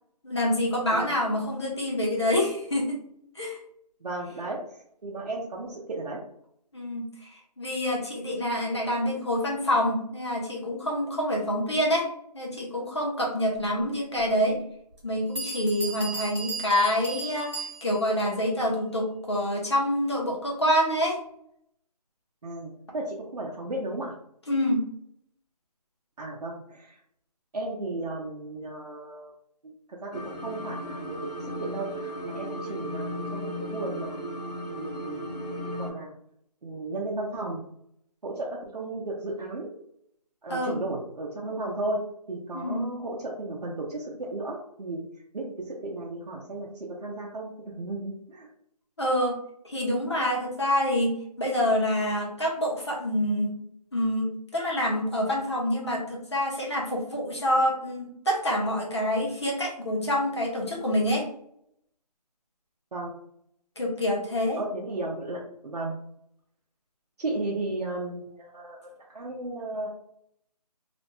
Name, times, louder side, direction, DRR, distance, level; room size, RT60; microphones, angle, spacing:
voice 1, 0.2-3.0 3.3-3.6 6.7-14.6 15.0-21.2 24.5-24.9 40.5-40.8 42.5-42.9 49.0-49.4 49.6-53.6 53.9-61.3 63.8-64.6, left 1 dB, 40° left, -2 dB, 0.6 m, -27 dB
voice 2, 4.0-4.6 5.0-6.2 22.4-22.7 22.9-24.1 26.2-26.9 27.5-29.3 29.9-30.1 30.4-31.2 31.6-34.2 34.7-36.1 36.6-37.6 38.2-39.7 40.4-42.0 42.3-45.0 45.3-48.5 62.9-63.1 64.6-66.0 67.2-69.9, right 2 dB, 70° right, -3 dB, 0.6 m, -34 dB
Bell, 14.2-14.3 15.0-15.1 15.4-18.2, right 3 dB, 45° right, 1.1 m, -36 dB
sound 1, 30.1-35.9, equal, 75° left, 0.8 m, -35 dB
2.5 x 2.1 x 2.9 m, 0.71 s
figure-of-eight pair, 180°, 21 cm